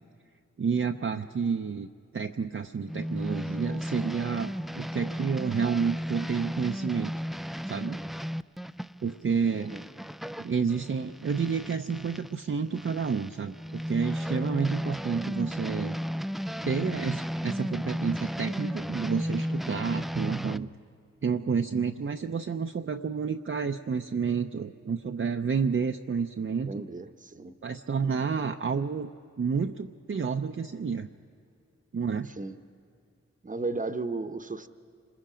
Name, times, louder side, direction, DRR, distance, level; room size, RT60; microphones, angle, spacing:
voice 1, 0.6-1.9 2.1-7.1 7.7-8.0 9.0-9.7 10.4-16.0 16.6-20.7 21.2-26.8 27.6-29.1 29.4-31.1 31.9-32.3, right 5 dB, 45° right, 5 dB, 0.7 m, -30 dB
sound 1, 2.9-12.3 12.7-20.6, equal, ahead, 0.4 m, -34 dB
voice 2, 26.6-27.6 32.4-32.6 33.4-34.7, right 3 dB, 25° right, 10 dB, 1.0 m, -35 dB
26.0 x 21.0 x 5.1 m, 2.3 s
cardioid pair, 45°, 29 cm